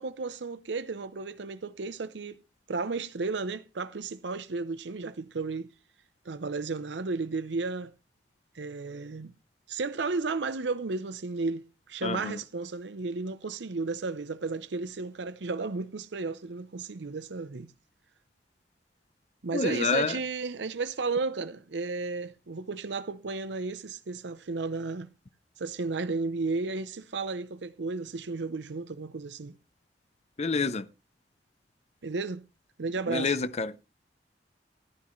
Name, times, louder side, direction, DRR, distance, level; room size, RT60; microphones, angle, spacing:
voice 1, 0.0-2.4 2.7-5.7 6.3-7.9 8.5-9.3 9.7-17.7 19.4-25.1 25.6-29.5 32.0-32.4 32.8-33.4, right 3 dB, 75° right, 0.6 m, -33 dB
voice 2, 12.0-12.4 19.5-20.2 30.4-30.9 33.1-33.7, left 4 dB, 40° left, 0.6 m, -28 dB
14.0 x 11.0 x 3.1 m
head